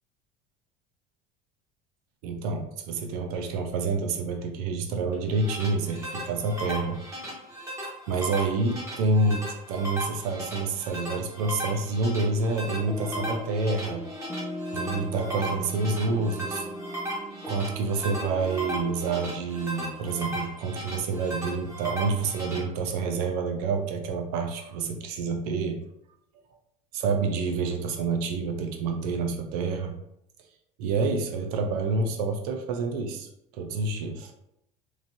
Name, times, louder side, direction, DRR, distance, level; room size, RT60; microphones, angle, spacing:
voice 1, 2.2-7.0 8.1-14.0 14.7-16.7 17.5-25.8 26.9-30.0 30.8-34.3, right 3 dB, 85° right, 4 dB, 0.6 m, -28 dB
sound 1, 5.1-22.6, right 1 dB, 15° right, 1.2 m, -37 dB
sound 2, 12.8-20.0, left 1 dB, ahead, 0.3 m, -39 dB
3.1 x 2.6 x 2.6 m, 0.78 s
supercardioid pair, 100°, 19 cm